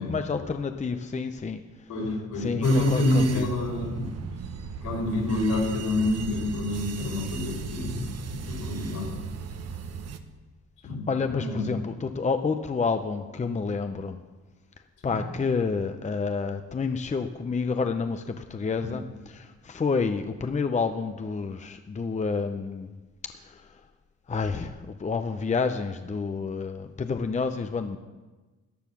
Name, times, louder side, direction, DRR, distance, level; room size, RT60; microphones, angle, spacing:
voice 1, 0.0-1.6 2.4-3.5 11.1-14.2 15.0-22.9 23.4-23.7 24.3-28.0, left 4 dB, 25° left, 7 dB, 0.7 m, -29 dB
voice 2, 1.9-4.1 4.8-9.2 10.8-11.0 11.3-11.7 15.0-15.2 18.8-18.9, left 1 dB, 75° left, -1 dB, 4.9 m, -27 dB
sound 1, 2.6-10.2, right 6 dB, 55° right, 1.1 m, -37 dB
14.0 x 9.6 x 6.1 m, 1.2 s
cardioid pair, 90°, 30 cm